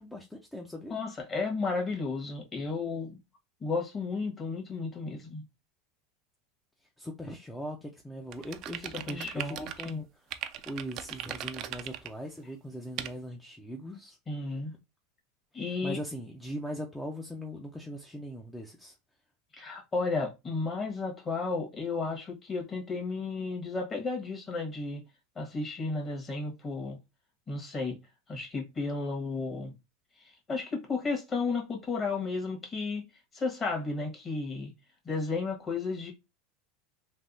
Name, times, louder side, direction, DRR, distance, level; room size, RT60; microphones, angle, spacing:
voice 1, 0.0-1.0 7.0-14.6 15.5-18.9, equal, 10° left, 0.6 m, -40 dB
voice 2, 0.9-3.1 3.6-5.4 8.9-10.0 14.3-14.7 15.5-16.0 19.5-25.0 25.3-27.0 27.5-28.0 28.3-29.7 30.5-33.1 33.3-34.7 35.0-36.1, left 3 dB, 30° left, 1.5 m, -33 dB
sound 1, 8.3-9.9 10.3-12.1 13.0-13.1, right 11 dB, 50° right, 0.4 m, -38 dB
3.4 x 2.6 x 2.6 m
hypercardioid pair, 100°, 0 cm